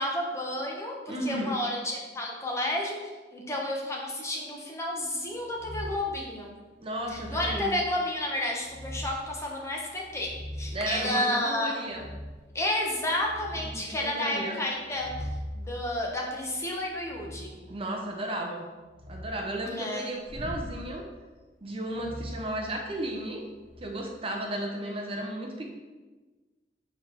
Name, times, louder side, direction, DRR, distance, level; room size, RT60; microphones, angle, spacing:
voice 1, 0.0-6.5 7.1-10.3 10.6-11.8 12.5-15.1 15.5-17.5 19.7-20.1, left 1 dB, 15° left, -1 dB, 0.9 m, -31 dB
voice 2, 1.1-1.5 6.8-7.7 10.7-12.1 13.5-14.6 17.5-18.7 19.1-21.0 21.6-23.5 23.8-25.7, right 1 dB, 35° right, 1 dB, 0.6 m, -34 dB
sound 1, 5.6-6.1 6.9-7.7 8.6-9.3 9.9-10.9 11.9-12.5 12.9-13.8 14.8-17.5 18.8-19.4 20.2-20.7 21.9-23.1 23.6-23.8, equal, 65° left, 1.0 m, -40 dB
6.2 x 3.9 x 4.4 m, 1.3 s
head